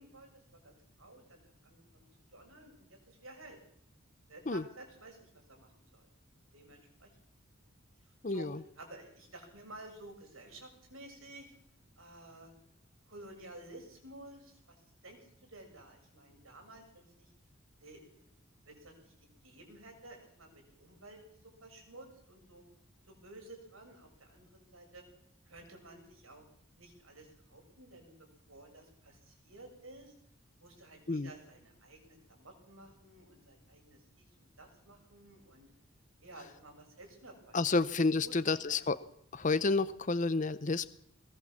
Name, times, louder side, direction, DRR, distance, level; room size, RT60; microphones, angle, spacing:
voice 1, 0.0-2.1 2.3-3.6 4.3-6.1 6.5-7.1 8.0-8.5 8.8-11.5 12.0-12.5 13.1-17.3 17.8-18.1 18.6-19.1 19.4-22.6 23.1-25.0 25.5-26.4 26.8-30.1 30.6-35.7 36.2-37.9 38.2-38.8, right 2 dB, 90° right, 4 dB, 7.1 m, -53 dB
voice 2, 8.2-8.6 31.1-31.3 37.5-39.0 39.3-40.9, left 3 dB, 40° left, 13 dB, 0.8 m, -30 dB
20.5 x 19.0 x 7.3 m, 0.69 s
head